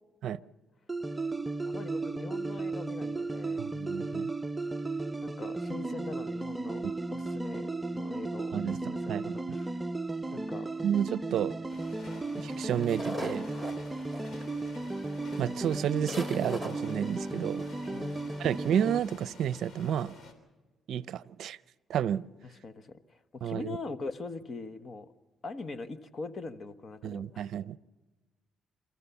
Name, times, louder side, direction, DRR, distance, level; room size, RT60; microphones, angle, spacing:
sound 1, 0.9-19.0, right 2 dB, 15° right, 0.6 m, -35 dB
voice 1, 1.7-3.7 5.2-6.8 7.1-9.9 10.3-10.7 17.8-18.4 22.4-25.1 25.4-27.5, left 3 dB, 45° left, 11 dB, 1.2 m, -42 dB
voice 2, 3.6-4.3 6.8-6.9 8.5-9.3 10.8-11.5 12.4-13.4 15.4-17.6 18.4-20.1 20.9-21.6 21.9-22.2 23.4-23.8 27.0-27.8, right 9 dB, 70° right, 17 dB, 0.5 m, -31 dB
sound 2, 11.7-20.3, left 3 dB, 60° left, 3.4 m, -51 dB
sound 3, 12.8-14.7 15.4-15.5 15.7-15.8 16.1-16.7, left 1 dB, 15° left, 3.0 m, -39 dB
28.5 x 14.0 x 7.0 m, 1.2 s
cardioid pair, 90°, 0 cm